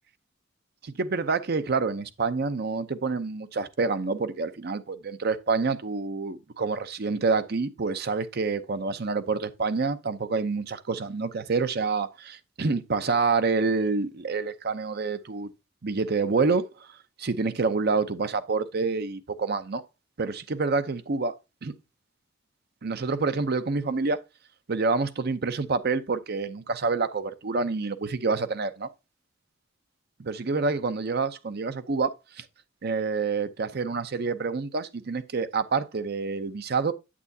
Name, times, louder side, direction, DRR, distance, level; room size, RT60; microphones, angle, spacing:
voice 1, 0.8-15.5 15.8-16.9 17.2-19.8 20.2-21.3 21.6-21.7 22.8-24.2 24.7-28.9 30.2-32.4 32.8-36.9, right 4 dB, 55° right, 0.7 m, -27 dB
8.6 x 7.9 x 2.7 m
head